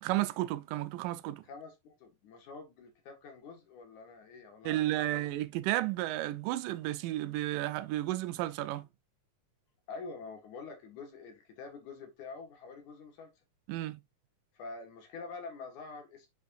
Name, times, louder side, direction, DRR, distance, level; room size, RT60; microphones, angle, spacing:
voice 1, 0.0-1.4 4.7-8.9 13.7-14.0, right 15 dB, 90° right, 2.2 m, -32 dB
voice 2, 1.4-5.3 9.9-13.3 14.5-16.3, left 4 dB, 70° left, 2.8 m, -46 dB
8.0 x 5.1 x 2.4 m
omnidirectional pair, 3.7 m